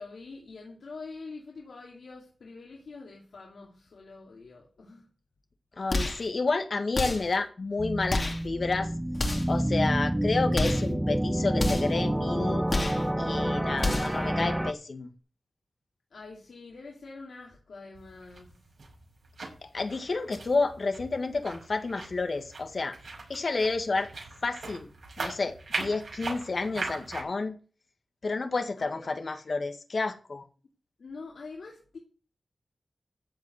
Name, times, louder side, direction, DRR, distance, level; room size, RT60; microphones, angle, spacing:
voice 1, 0.0-5.0 16.1-18.5 28.8-29.1 31.0-32.0, left 3 dB, 85° left, 2.9 m, -45 dB
voice 2, 5.8-8.9 9.5-12.7 13.2-15.1 19.7-22.9 23.3-24.1 24.4-24.9 25.2-27.6 28.2-30.4, left 3 dB, 60° left, 1.8 m, -30 dB
sound 1, 5.9-6.3 6.9-7.4 8.1-8.5 9.1-9.6 10.5-10.9 11.6-12.0 12.7-13.1 13.8-14.2, left 2 dB, 45° left, 2.7 m, -30 dB
sound 2, 7.8-14.7, right 1 dB, 10° right, 0.7 m, -28 dB
sound 3, 17.9-27.2, right 3 dB, 75° right, 6.2 m, -40 dB
14.5 x 5.3 x 8.1 m
wide cardioid pair, 75°, 0 cm